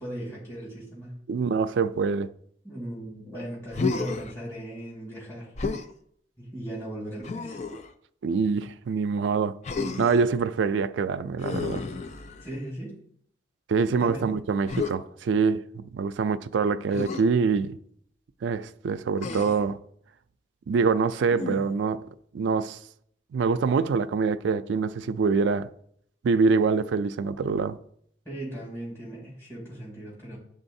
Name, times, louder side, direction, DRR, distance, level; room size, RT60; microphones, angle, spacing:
voice 1, 0.0-1.1 2.6-5.5 6.4-7.6 12.4-13.0 13.8-14.4 28.2-30.4, right 1 dB, 15° left, 2.6 m, -38 dB
voice 2, 1.3-2.3 8.2-9.6 10.0-11.8 13.7-17.8 18.4-19.8 20.7-22.1 22.3-22.8 23.3-25.7 26.2-27.8, right 5 dB, 85° right, 0.3 m, -25 dB
Human voice, 3.7-4.3 5.6-5.9 7.2-7.9 9.6-10.3 11.4-12.6 14.7-15.0 16.9-17.2 19.2-19.7 21.3-21.8, left 4 dB, 40° left, 0.4 m, -31 dB
10.5 x 3.8 x 2.7 m
head